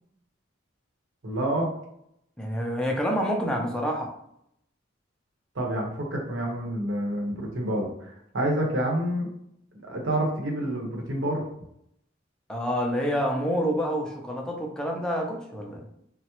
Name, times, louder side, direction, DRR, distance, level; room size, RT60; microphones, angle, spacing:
voice 1, 1.2-1.7 5.5-9.3 9.8-11.4, right 1 dB, 75° right, 0 dB, 0.8 m, -28 dB
voice 2, 2.4-4.1 12.5-15.8, equal, 5° left, 0 dB, 0.4 m, -27 dB
3.5 x 2.0 x 2.9 m, 0.74 s
head